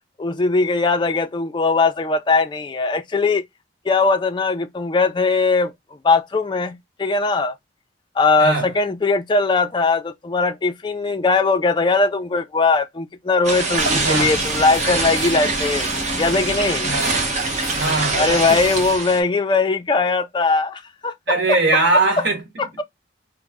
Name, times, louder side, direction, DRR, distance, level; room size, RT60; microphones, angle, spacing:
voice 1, 0.2-3.4 3.9-7.5 8.2-15.9 16.2-16.9 18.1-21.6 22.6-22.8, left 3 dB, 25° left, 0.3 m, -20 dB
voice 2, 8.4-8.7 13.9-14.4 16.8-17.1 17.7-18.5 21.3-22.4, right 3 dB, 60° right, 1.2 m, -20 dB
sound 1, 13.4-19.2, right 3 dB, 40° right, 0.8 m, -24 dB
sound 2, 13.8-18.9, left 1 dB, 5° left, 1.0 m, -33 dB
3.1 x 2.0 x 3.4 m
head